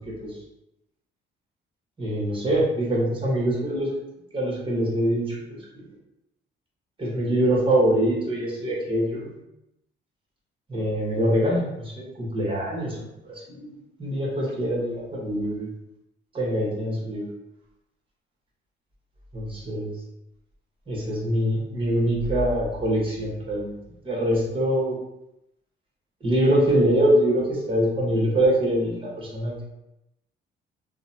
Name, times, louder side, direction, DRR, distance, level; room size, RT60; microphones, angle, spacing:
voice 1, 2.0-3.9 4.3-5.8 7.0-9.4 10.7-13.7 14.0-15.7 16.3-17.2 19.3-19.9 20.9-23.7 24.0-25.0 26.2-29.6, right 1 dB, 25° right, -5 dB, 1.2 m, -24 dB
2.7 x 2.2 x 2.7 m, 0.87 s
cardioid pair, 90°, 20 cm